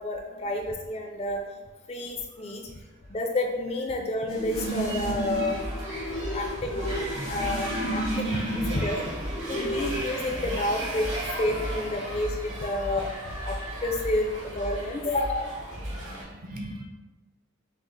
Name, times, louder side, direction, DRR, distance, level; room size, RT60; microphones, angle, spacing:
voice 1, 0.0-1.4 1.9-2.7 3.1-5.6 6.3-6.8 7.3-9.0 9.5-11.1 11.4-15.6, left 1 dB, 30° left, 1 dB, 0.4 m, -30 dB
sound 1, 4.3-10.0, right 1 dB, 80° left, 0.9 m, -33 dB
sound 2, 4.5-16.2, right 1 dB, 60° right, 1.4 m, -34 dB
voice 2, 8.4-8.7 15.9-16.8, equal, 40° right, 1 dB, 0.6 m, -40 dB
5.6 x 2.0 x 3.1 m, 1.2 s
head